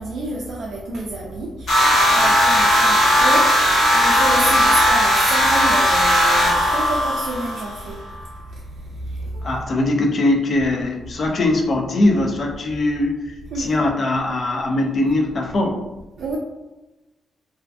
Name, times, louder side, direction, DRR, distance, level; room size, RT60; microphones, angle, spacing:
voice 1, 0.0-9.6 13.5-13.7 16.2-16.4, right 2 dB, 70° right, -3 dB, 0.3 m, -29 dB
sound 1, 1.7-7.8, equal, 55° left, 0.9 m, -17 dB
voice 2, 9.4-13.2 13.6-15.8, left 2 dB, 40° left, 1 dB, 0.4 m, -21 dB
2.4 x 2.1 x 2.5 m, 1.1 s
wide cardioid pair, 165°, 0 cm